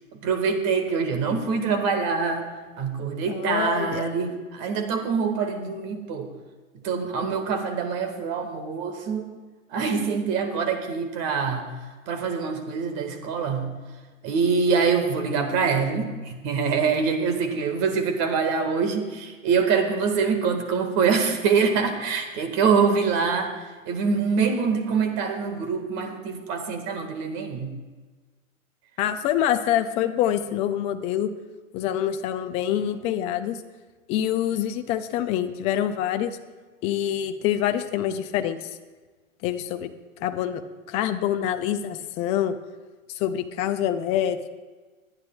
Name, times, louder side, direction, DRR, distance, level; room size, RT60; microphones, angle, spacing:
voice 1, 0.1-2.5 2.8-6.3 6.8-9.3 9.7-11.7 12.1-13.7 14.2-23.5 23.8-27.7, right 5 dB, 40° right, 6 dB, 1.7 m, -25 dB
voice 2, 3.3-4.1 29.0-31.3 31.7-33.6 34.1-36.4 36.8-38.7 39.4-39.9 40.2-40.6 40.9-42.6 43.1-44.5, left 11 dB, 15° left, 9 dB, 0.4 m, -26 dB
23.0 x 9.7 x 2.3 m, 1.3 s
hypercardioid pair, 115°, 40 cm